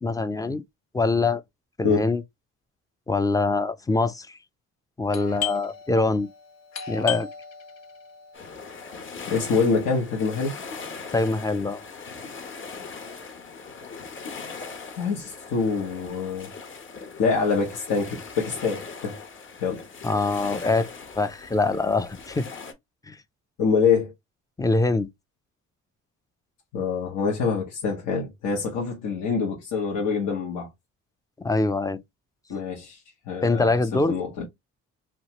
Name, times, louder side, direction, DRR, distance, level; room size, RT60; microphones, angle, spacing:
voice 1, 0.0-0.6 0.9-1.4 1.8-2.2 3.1-4.4 5.0-6.3 6.9-7.3 11.1-11.8 20.0-20.9 21.2-22.5 23.1-23.2 24.6-25.1 31.4-32.0 33.4-34.2, left 3 dB, 10° left, 0.3 m, -24 dB
Doorbell, 5.1-10.6, left 9 dB, 60° left, 0.7 m, -37 dB
sound 1, 8.3-22.7, left 4 dB, 40° left, 1.0 m, -40 dB
voice 2, 9.3-10.5 14.9-16.5 17.2-19.2 19.6-19.8 23.6-24.1 26.7-30.7 32.5-33.0 33.3-34.4, left 5 dB, 85° left, 1.0 m, -25 dB
3.0 x 2.4 x 2.8 m
cardioid pair, 90°, 30 cm